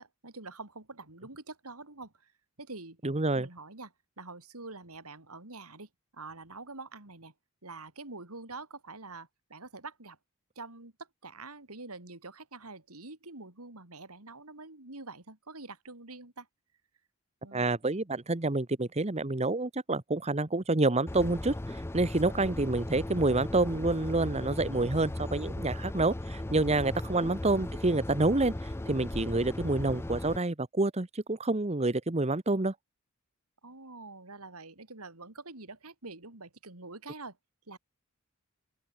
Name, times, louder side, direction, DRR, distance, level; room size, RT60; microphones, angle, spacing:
voice 1, 0.0-2.3 2.6-3.0 3.3-7.3 7.6-10.2 10.6-16.5 17.4-17.7 27.2-27.3 33.6-37.4 37.7-37.8, right 3 dB, 85° right, 4.1 m, -46 dB
voice 2, 3.0-3.5 17.5-32.7, right 2 dB, 30° right, 1.1 m, -28 dB
sound 1, 21.1-30.4, left 1 dB, 10° left, 0.5 m, -37 dB
open air
head